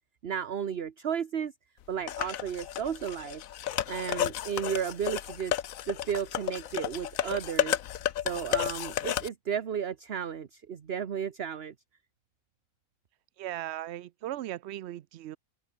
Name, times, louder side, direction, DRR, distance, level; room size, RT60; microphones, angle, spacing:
voice 1, 0.2-1.5 1.9-3.4 3.9-5.5 5.9-7.8 8.2-11.7, right 8 dB, 50° right, 1.2 m, -33 dB
sound 1, 2.1-9.3, left 11 dB, 75° left, 1.2 m, -32 dB
voice 2, 13.4-15.4, right 13 dB, 65° right, 0.7 m, -37 dB
open air
omnidirectional pair, 1.5 m